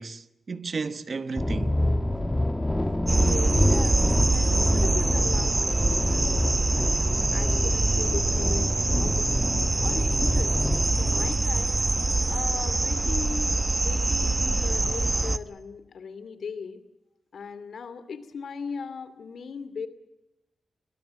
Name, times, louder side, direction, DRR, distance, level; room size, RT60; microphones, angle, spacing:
voice 1, 0.0-1.8 12.0-12.3, right 4 dB, 45° right, 1.1 m, -34 dB
sound 1, 1.4-11.3, left 1 dB, 10° left, 1.3 m, -27 dB
voice 2, 3.1-6.4 6.7-9.4 9.8-10.6 11.0-11.8 12.3-16.8 17.3-19.9, left 5 dB, 70° left, 2.5 m, -38 dB
sound 2, 3.1-15.4, right 2 dB, 25° right, 0.9 m, -24 dB
22.0 x 21.5 x 9.6 m
wide cardioid pair, 115°, 0 cm